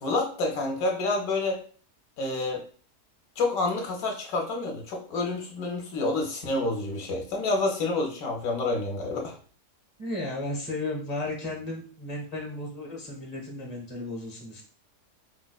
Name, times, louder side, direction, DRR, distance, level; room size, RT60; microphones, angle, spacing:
voice 1, 0.0-1.6 2.2-2.6 3.4-9.3, left 2 dB, 65° left, 1 dB, 1.0 m, -28 dB
voice 2, 10.0-14.6, left 2 dB, 35° left, -2 dB, 0.7 m, -34 dB
4.6 x 2.1 x 2.2 m, 0.43 s
omnidirectional pair, 1.8 m